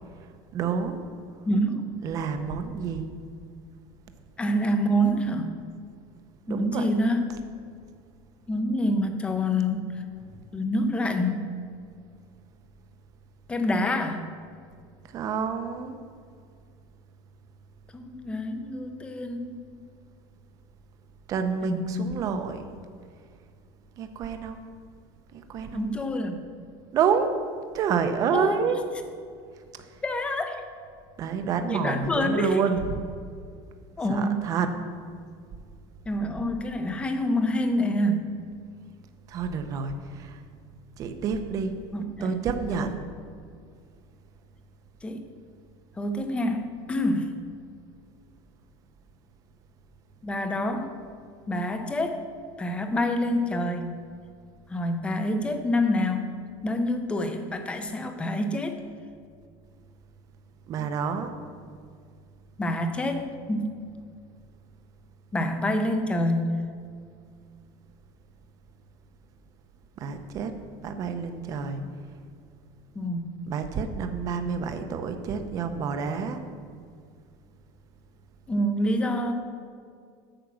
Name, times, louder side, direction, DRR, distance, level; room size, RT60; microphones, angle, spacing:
voice 1, 0.5-1.0 2.0-3.1 6.5-6.9 15.0-16.0 21.3-22.6 24.0-24.6 25.3-25.9 26.9-27.3 27.7-28.8 29.9-30.0 31.2-32.8 34.1-34.7 39.3-40.4 41.0-41.8 42.2-43.0 60.7-61.3 70.0-71.8 73.5-76.4, right 6 dB, 30° right, 8 dB, 0.6 m, -28 dB
voice 2, 1.4-2.0 4.4-5.6 6.5-7.3 8.5-10.1 10.5-11.6 13.5-14.3 17.9-19.6 21.6-22.1 25.7-26.4 28.3-28.6 30.0-30.6 31.7-32.6 34.0-34.5 36.1-38.4 41.9-42.9 45.0-45.2 46.0-47.4 50.2-51.0 51.5-52.3 52.6-54.0 54.7-58.8 60.8-60.9 62.6-63.8 65.3-66.6 73.0-73.4 78.5-79.3, left 1 dB, 10° left, 6 dB, 0.6 m, -27 dB
8.8 x 5.8 x 7.1 m, 2.2 s
cardioid pair, 180°, 12 cm